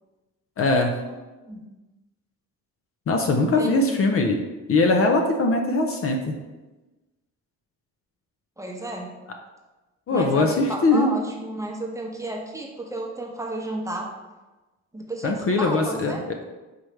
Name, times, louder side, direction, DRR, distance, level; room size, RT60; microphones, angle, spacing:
voice 1, 0.6-1.0 3.1-4.4 4.7-6.4 10.1-11.1 15.2-16.2, left 2 dB, 45° left, 3 dB, 0.5 m, -21 dB
voice 2, 3.6-4.0 8.6-9.1 10.1-14.1 14.9-16.2, right 1 dB, 10° right, -1 dB, 0.9 m, -32 dB
5.1 x 3.1 x 3.2 m, 1.1 s
cardioid pair, 90°, 30 cm